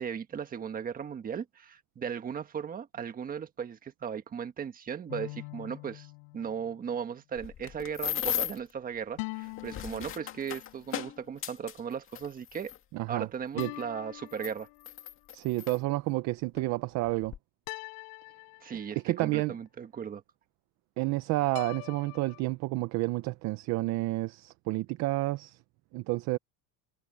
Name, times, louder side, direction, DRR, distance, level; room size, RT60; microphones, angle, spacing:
voice 1, 0.0-6.1 6.3-12.7 13.1-14.7 18.6-20.2, right 7 dB, 20° right, 1.4 m, -37 dB
sound 1, 5.1-6.8 9.2-10.9 13.6-15.1 17.7-19.3 21.5-22.4, left 35 dB, 75° left, 5.5 m, -43 dB
sound 2, 7.4-8.7 9.5-12.8 13.6-13.7 14.3-15.8 16.6-16.7 17.0-17.4, left 10 dB, 35° left, 2.1 m, -36 dB
voice 2, 12.9-13.3 13.5-13.7 15.3-17.3 19.0-19.5 21.0-25.6 25.9-26.4, right 20 dB, 45° right, 0.6 m, -30 dB
cardioid pair, 165°, 39 cm